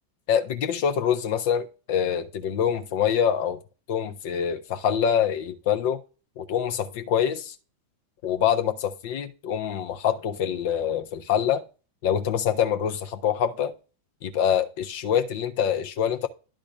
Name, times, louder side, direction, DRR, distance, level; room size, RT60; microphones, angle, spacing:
voice 1, 0.3-3.6 3.9-6.0 6.4-7.5 8.2-11.6 12.0-13.7 14.2-16.3, left 8 dB, 50° left, 1.1 m, -25 dB
11.0 x 3.8 x 4.9 m
figure-of-eight pair, 90°, 0 cm